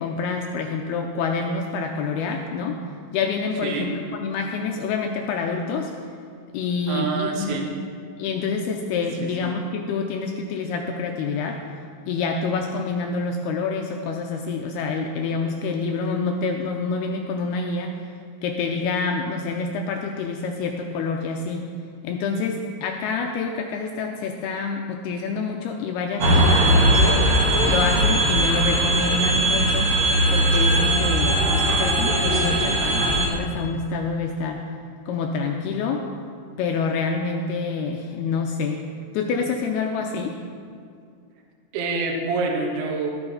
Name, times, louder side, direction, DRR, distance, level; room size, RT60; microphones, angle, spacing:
voice 1, 0.0-2.8 3.1-5.9 6.5-7.6 8.2-11.6 12.1-18.0 18.4-21.6 22.0-27.3 27.7-29.9 30.3-34.6 35.1-36.1 36.6-38.8 39.1-40.4, left 4 dB, 85° left, 3 dB, 2.3 m, -27 dB
voice 2, 6.9-7.7 9.2-9.5 41.7-43.1, right 4 dB, 80° right, 1 dB, 3.5 m, -27 dB
sound 1, 26.2-33.3, right 1 dB, 60° right, 1.2 m, -19 dB
13.0 x 12.5 x 4.0 m, 2.2 s
omnidirectional pair, 5.2 m